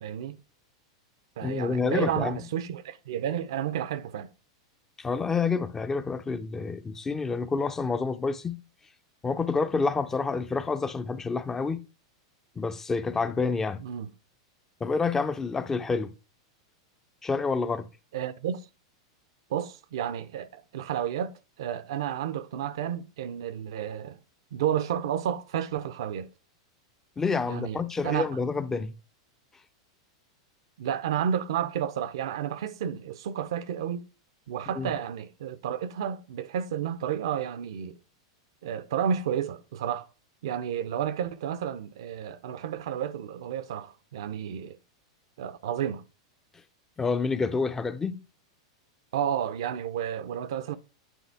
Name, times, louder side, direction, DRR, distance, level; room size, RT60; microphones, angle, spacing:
voice 1, 0.0-0.4 1.4-4.3 13.8-14.1 18.1-18.7 19.5-21.3 21.6-24.2 24.5-26.3 27.4-28.3 30.8-34.0 34.5-37.9 38.6-40.1 40.4-44.8 45.4-46.0 49.1-50.8, right 9 dB, 70° right, 0.5 m, -31 dB
voice 2, 1.4-2.4 5.0-8.6 9.2-11.8 12.6-13.8 14.8-16.1 17.2-17.9 27.2-28.9 34.8-34.9 47.0-48.2, left 4 dB, 15° left, 0.4 m, -28 dB
9.0 x 3.6 x 3.4 m
hypercardioid pair, 110°, 3 cm